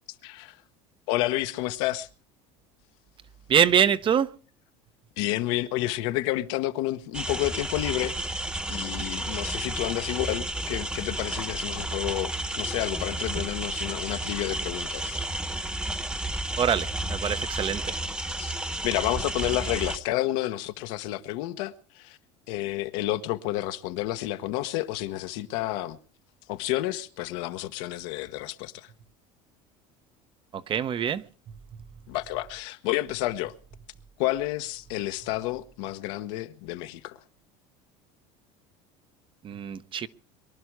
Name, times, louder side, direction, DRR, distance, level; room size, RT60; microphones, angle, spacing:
voice 1, 0.2-0.6 1.1-2.1 5.2-8.4 8.7-15.2 18.4-18.6 18.8-22.2 22.5-26.0 26.5-28.9 32.1-33.5 34.2-37.2, left 16 dB, 75° left, 1.1 m, -30 dB
voice 2, 3.5-4.3 16.6-18.0 30.7-31.2 39.4-40.1, right 8 dB, 35° right, 0.8 m, -24 dB
sound 1, 7.1-20.0, right 1 dB, 5° right, 1.1 m, -32 dB
23.0 x 11.5 x 4.8 m
supercardioid pair, 110°, 15 cm